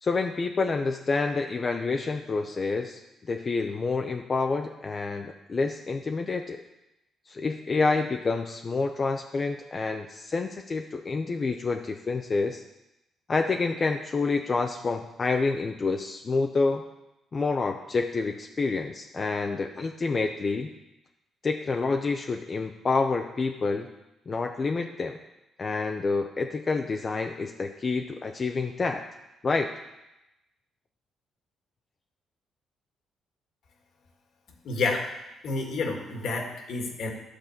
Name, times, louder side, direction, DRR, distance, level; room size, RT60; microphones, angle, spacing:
voice 1, 0.0-3.0 3.3-6.6 7.3-12.6 13.3-16.8 17.3-20.7 21.4-23.9 24.3-25.2 25.6-29.0 29.4-29.7, left 4 dB, 35° left, 4 dB, 0.7 m, -28 dB
voice 2, 34.6-35.1 35.4-37.1, left 3 dB, 70° left, 2 dB, 2.0 m, -29 dB
11.5 x 4.1 x 7.2 m, 0.92 s
cardioid pair, 90°, 0 cm